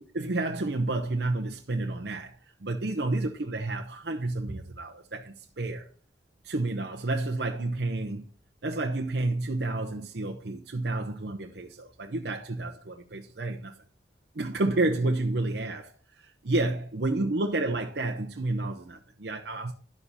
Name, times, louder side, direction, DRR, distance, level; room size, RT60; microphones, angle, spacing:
voice 1, 0.0-5.9 6.4-8.3 8.6-13.8 14.3-19.7, right 2 dB, 70° right, 0.8 m, -30 dB
10.0 x 6.9 x 4.1 m
head